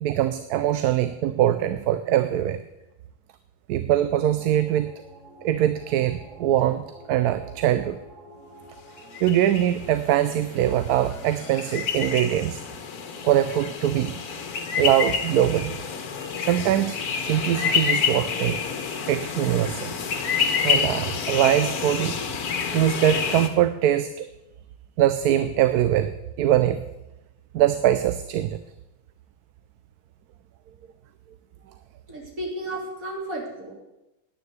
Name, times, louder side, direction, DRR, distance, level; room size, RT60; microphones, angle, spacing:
voice 1, 0.0-2.6 3.7-4.9 5.4-8.0 9.2-12.6 13.2-14.1 14.8-15.7 16.4-18.6 19.1-19.9 20.6-22.2 22.7-24.3 25.0-26.8 27.5-28.6, right 11 dB, 85° right, 11 dB, 1.2 m, -22 dB
sound 1, 4.2-21.6, right 1 dB, ahead, 2.9 m, -49 dB
sound 2, 9.0-23.5, left 7 dB, 80° left, 1.6 m, -28 dB
voice 2, 32.1-33.8, right 1 dB, 65° right, -1 dB, 3.6 m, -33 dB
9.7 x 9.6 x 8.0 m, 0.96 s
omnidirectional pair, 1.6 m